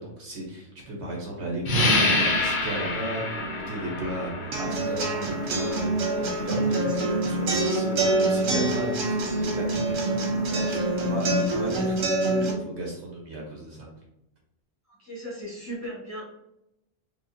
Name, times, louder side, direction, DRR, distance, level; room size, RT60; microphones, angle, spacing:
voice 1, 0.0-13.9, right 1 dB, 60° right, -2 dB, 1.2 m, -35 dB
sound 1, 1.6-11.9, left 2 dB, 75° left, 1.2 m, -30 dB
sound 2, 4.5-12.5, right 2 dB, 80° right, 1.1 m, -26 dB
voice 2, 15.0-16.2, right 1 dB, 15° left, -7 dB, 1.2 m, -36 dB
4.6 x 2.4 x 2.6 m, 0.85 s
omnidirectional pair, 1.3 m